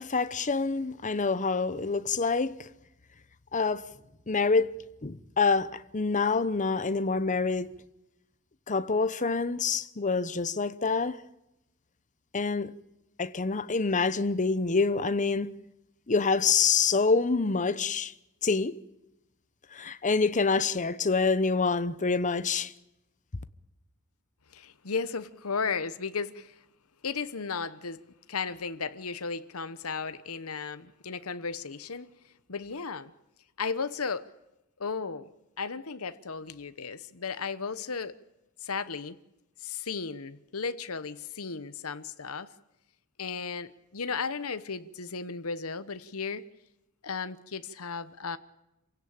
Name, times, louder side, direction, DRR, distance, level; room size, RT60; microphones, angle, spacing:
voice 1, 0.0-2.7 3.5-3.8 4.3-4.7 5.0-7.7 8.7-11.2 12.3-12.7 13.2-15.5 16.1-18.1 18.4-18.8 19.7-22.7, left 4 dB, 35° left, 0.9 m, -26 dB
voice 2, 24.5-26.6 27.0-33.1 33.6-34.3 34.8-35.3 35.6-38.2 38.6-39.2 39.6-42.5 43.2-46.4 47.0-48.4, left 5 dB, 85° left, 1.1 m, -35 dB
27.0 x 16.5 x 8.8 m
head